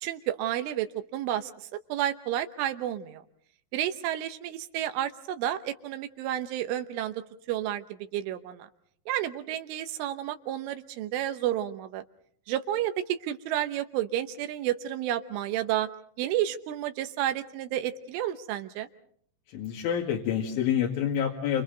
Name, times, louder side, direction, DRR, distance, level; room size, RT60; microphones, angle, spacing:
voice 1, 0.0-3.2 3.7-8.7 9.1-12.0 12.5-15.9 16.2-18.9, right 12 dB, 85° right, 8 dB, 3.5 m, -31 dB
voice 2, 19.5-21.6, left 9 dB, 80° left, -1 dB, 4.4 m, -27 dB
30.0 x 27.5 x 4.0 m, 0.63 s
omnidirectional pair, 5.5 m